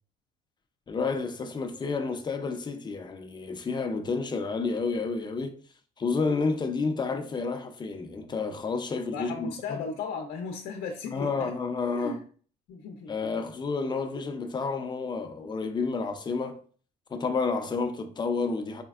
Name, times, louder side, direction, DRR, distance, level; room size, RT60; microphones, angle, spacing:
voice 1, 0.9-5.6 6.0-9.8 11.1-12.2 13.1-16.6 17.1-18.8, left 4 dB, 25° left, 0.6 m, -30 dB
voice 2, 9.1-11.5 11.9-12.2 12.7-13.1, left 5 dB, 75° left, 0.7 m, -36 dB
4.3 x 3.1 x 2.4 m
cardioid pair, 110°, 17 cm